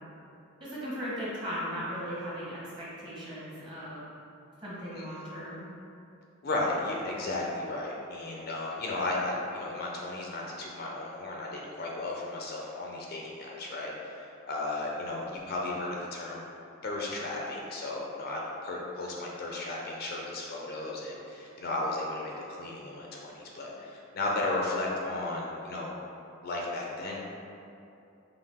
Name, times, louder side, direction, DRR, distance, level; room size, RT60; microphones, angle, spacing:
voice 1, 0.6-4.0 4.6-5.6 7.2-7.3, equal, 20° right, -8 dB, 1.1 m, -37 dB
voice 2, 4.9-5.3 6.4-16.4 16.8-25.9 26.4-27.2, left 2 dB, 45° left, -2 dB, 0.5 m, -34 dB
5.5 x 2.4 x 3.5 m, 2.7 s
head